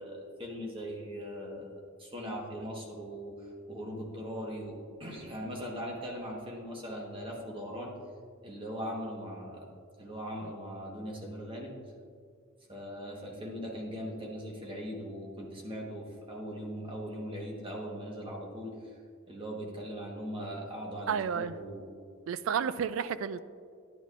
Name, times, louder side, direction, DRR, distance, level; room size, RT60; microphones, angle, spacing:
voice 1, 0.0-8.0 8.4-9.7 10.0-11.8 12.7-19.0 19.3-21.8, equal, 25° right, -1 dB, 1.2 m, -40 dB
voice 2, 21.1-21.5 22.3-23.4, right 7 dB, 80° right, 15 dB, 0.3 m, -31 dB
11.0 x 9.1 x 2.5 m, 2.2 s
head